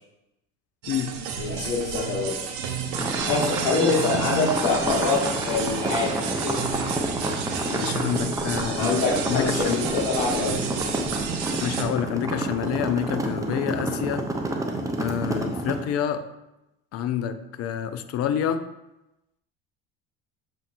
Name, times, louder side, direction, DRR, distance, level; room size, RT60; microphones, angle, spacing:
sound 1, 0.8-11.8, right 6 dB, 75° right, 0.7 m, -31 dB
voice 1, 1.4-2.3 3.3-5.2 5.4-6.5 8.7-10.6, left 4 dB, 70° left, -6 dB, 1.2 m, -25 dB
sound 2, 2.9-15.8, right 1 dB, 10° right, 0.6 m, -29 dB
voice 2, 7.7-9.0 9.3-10.0 11.6-14.2 15.0-16.2 16.9-18.6, left 9 dB, 45° left, 11 dB, 0.5 m, -28 dB
6.9 x 2.9 x 2.5 m, 0.93 s
hypercardioid pair, 75°, 33 cm